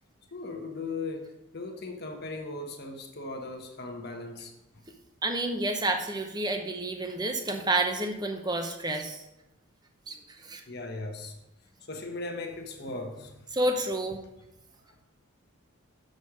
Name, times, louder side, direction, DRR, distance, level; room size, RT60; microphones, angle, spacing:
voice 1, 0.3-4.5 10.7-11.4 11.8-13.4, left 3 dB, 45° left, 3 dB, 1.1 m, -38 dB
voice 2, 5.2-9.2 10.1-10.2 10.4-10.6 13.5-14.2, right 2 dB, 20° right, 5 dB, 0.8 m, -29 dB
7.0 x 6.5 x 4.8 m, 0.89 s
head